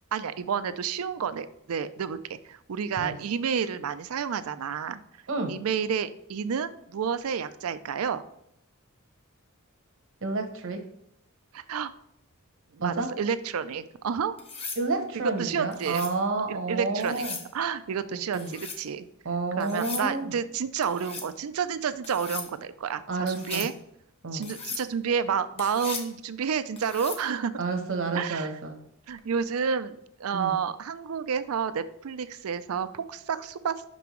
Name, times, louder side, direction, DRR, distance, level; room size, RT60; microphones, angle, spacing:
voice 1, 0.1-5.0 5.5-8.2 11.5-11.9 12.7-14.3 15.4-16.0 16.5-17.3 17.5-19.1 19.6-23.7 24.3-27.5 28.1-28.5 29.1-29.9 30.2-33.8, right 7 dB, 80° right, 13 dB, 0.4 m, -30 dB
voice 2, 5.3-5.6 10.2-10.8 12.8-13.1 14.8-17.4 18.3-18.5 19.2-20.3 23.1-23.7 24.2-24.5 27.6-28.8 30.3-30.6, right 3 dB, 65° right, 5 dB, 1.0 m, -30 dB
sound 1, 14.4-14.8 15.7-16.2 17.0-17.5 18.3-18.8 19.6-20.1 20.8-21.3 22.0-22.5 23.3-23.7 24.4-24.9 25.6-26.1 26.8-27.3 29.2-29.4, left 4 dB, 30° left, 0.9 m, -38 dB
5.8 x 5.3 x 3.1 m, 0.77 s
head